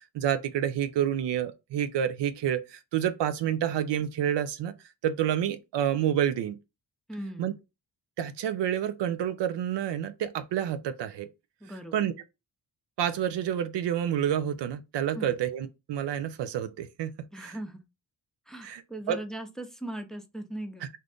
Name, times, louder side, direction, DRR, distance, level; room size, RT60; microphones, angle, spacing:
voice 1, 0.1-4.7 5.0-6.6 7.4-7.5 8.2-11.3 11.9-12.1 13.0-17.6 18.6-18.8 19.1-19.2, right 10 dB, 70° right, 0.5 m, -29 dB
voice 2, 7.1-7.6 11.6-12.1 15.1-15.3 17.3-17.8 18.5-20.9, right 1 dB, ahead, 0.7 m, -39 dB
2.6 x 2.5 x 3.4 m
supercardioid pair, 50°, 45 cm